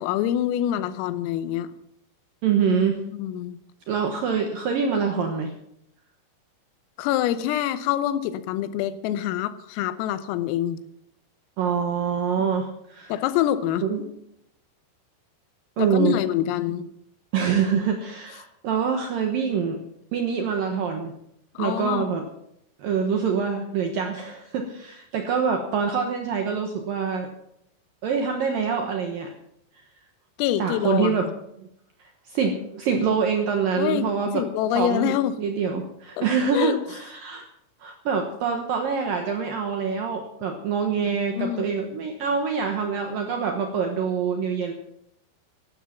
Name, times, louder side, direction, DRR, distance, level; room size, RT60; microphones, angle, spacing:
voice 1, 0.0-1.7 3.2-3.6 7.0-10.8 12.4-12.5 13.1-13.8 15.8-16.9 21.6-22.1 30.4-31.3 33.8-34.1 34.3-35.4 36.2-36.8 41.0-41.7, left 11 dB, 85° left, 13 dB, 3.5 m, -26 dB
voice 2, 2.4-3.0 3.9-5.5 11.6-13.1 13.8-14.0 15.8-16.2 17.3-19.8 20.1-21.1 21.6-22.2 22.8-27.3 28.0-29.3 30.6-31.3 31.6-31.7 32.3-34.5 34.8-35.1 35.4-37.4 37.8-44.7, right 6 dB, 85° right, 4 dB, 2.0 m, -25 dB
14.0 x 12.0 x 5.8 m, 0.75 s
omnidirectional pair, 5.9 m